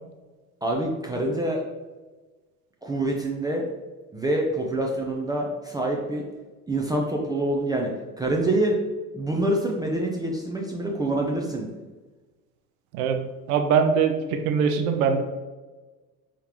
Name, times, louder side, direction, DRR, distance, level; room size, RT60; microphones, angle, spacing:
voice 1, 0.6-1.6 2.8-3.6 4.1-6.2 6.7-7.9 8.2-8.8 9.1-11.7, right 1 dB, 10° right, -1 dB, 0.4 m, -26 dB
voice 2, 12.9-15.2, right 6 dB, 65° right, 6 dB, 0.7 m, -22 dB
4.4 x 3.5 x 2.9 m, 1.3 s
figure-of-eight pair, 70°, 47 cm